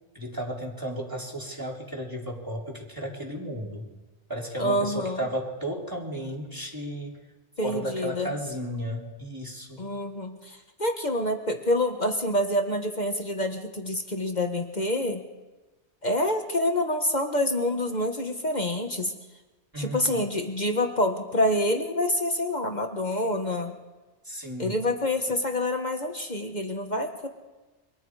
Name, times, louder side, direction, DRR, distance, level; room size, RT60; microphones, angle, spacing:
voice 1, 0.1-3.9 4.3-7.2 7.6-9.9 19.7-20.3 24.2-24.8, equal, 20° right, -2 dB, 4.0 m, -34 dB
voice 2, 4.6-5.2 7.6-8.3 9.8-15.2 16.0-19.2 19.8-23.7 24.6-27.3, left 1 dB, 40° left, 4 dB, 1.6 m, -27 dB
29.5 x 25.5 x 4.9 m, 1.2 s
omnidirectional pair, 1.2 m